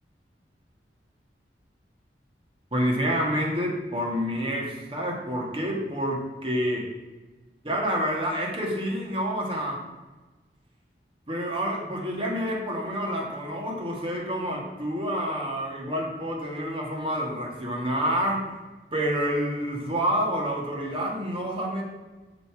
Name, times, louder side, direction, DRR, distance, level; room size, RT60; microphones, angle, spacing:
voice 1, 2.7-6.9 7.6-9.8 11.3-18.4 18.9-21.8, equal, 30° right, -1 dB, 1.7 m, -28 dB
6.8 x 5.1 x 6.0 m, 1.2 s
head